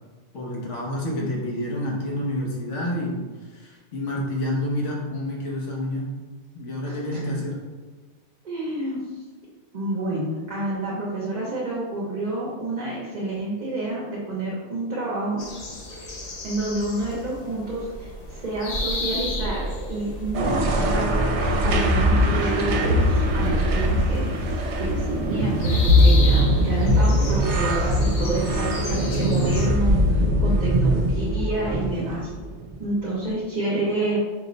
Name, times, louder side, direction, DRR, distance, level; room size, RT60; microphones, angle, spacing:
voice 1, 0.3-3.2 3.5-6.1 6.5-7.6, left 1 dB, 85° left, -3 dB, 1.2 m, -28 dB
voice 2, 6.8-7.6 8.4-9.1 9.7-15.4 16.4-21.2 21.6-24.4 24.8-32.3 32.8-34.2, right 2 dB, 45° right, -5 dB, 0.7 m, -29 dB
sound 1, 15.4-29.7, equal, 45° left, 0.6 m, -31 dB
sound 2, 20.3-32.8, equal, 75° right, 0.8 m, -21 dB
4.6 x 2.1 x 3.8 m, 1.4 s
omnidirectional pair, 1.2 m